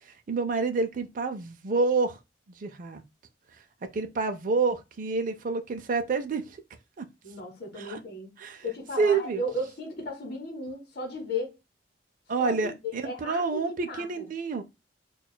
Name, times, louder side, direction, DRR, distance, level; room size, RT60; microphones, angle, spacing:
voice 1, 0.0-2.2 2.6-3.0 3.5-3.6 3.9-6.6 7.0-7.1 7.8-8.0 8.4-8.6 9.0-9.4 12.3-14.6, right 4 dB, 50° right, 0.4 m, -28 dB
voice 2, 7.2-8.3 8.6-11.5 12.4-12.7 13.0-14.2, left 1 dB, 50° left, 1.0 m, -35 dB
6.0 x 2.3 x 2.2 m
head